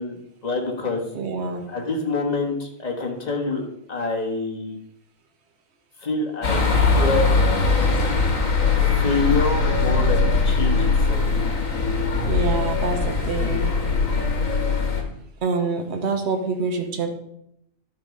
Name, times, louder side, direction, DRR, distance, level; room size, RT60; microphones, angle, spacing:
voice 1, 0.0-1.1 1.7-4.8 6.0-7.3 8.7-11.3, left 3 dB, 30° left, 0 dB, 1.6 m, -27 dB
voice 2, 1.1-1.6 12.2-13.7 15.4-17.1, right 4 dB, 55° right, 5 dB, 1.4 m, -26 dB
sound 1, 6.4-15.0, left 4 dB, 80° left, 1.8 m, -21 dB
12.0 x 4.6 x 5.3 m, 0.75 s
omnidirectional pair, 1.4 m